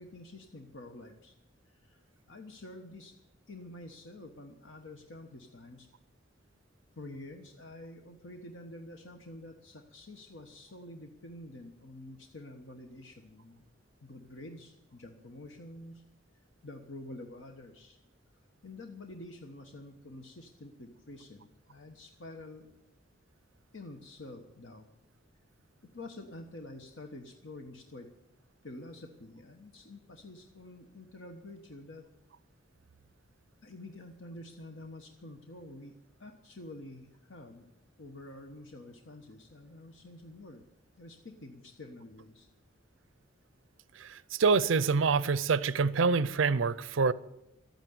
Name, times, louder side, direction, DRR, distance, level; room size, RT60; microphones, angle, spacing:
voice 1, 0.0-1.3 1.8-2.0 2.3-3.1 3.5-5.9 6.9-13.6 14.0-16.0 16.6-18.0 18.6-22.7 23.7-24.9 25.9-28.1 28.6-32.0 33.6-37.7 38.0-40.6 41.0-42.5, left 2 dB, 75° left, 1.2 m, -48 dB
voice 2, 44.0-47.1, right 5 dB, 85° right, 0.5 m, -26 dB
13.0 x 9.2 x 9.4 m
head